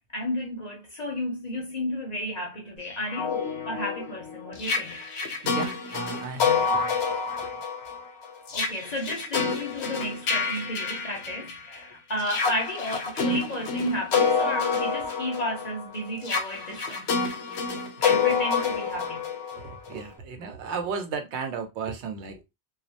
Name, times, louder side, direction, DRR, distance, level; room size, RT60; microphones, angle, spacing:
voice 1, 0.1-5.1 8.5-17.2 18.0-19.3, left 1 dB, 50° left, 0.5 m, -33 dB
sound 1, 2.9-11.7 12.2-20.0, left 5 dB, 70° left, 0.9 m, -28 dB
voice 2, 5.4-7.0 7.2-7.6 18.1-18.2 19.6-22.4, right 5 dB, 75° right, 0.9 m, -35 dB
2.3 x 2.0 x 2.6 m
omnidirectional pair, 1.2 m